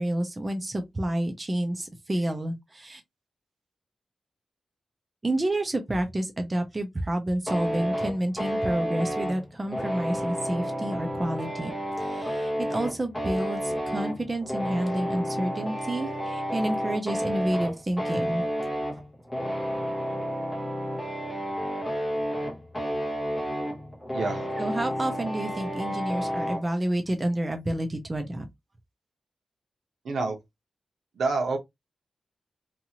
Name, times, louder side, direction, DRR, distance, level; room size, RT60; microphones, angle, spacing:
voice 1, 0.0-3.0 5.2-11.7 12.0-18.4 24.6-28.5, right 1 dB, 20° right, 0.4 m, -29 dB
sound 1, 7.5-26.6, equal, 5° left, 0.8 m, -31 dB
voice 2, 24.1-24.4 30.0-30.4 31.1-31.6, right 3 dB, 80° right, 0.8 m, -27 dB
2.7 x 2.4 x 2.8 m
wide cardioid pair, 175°, 0 cm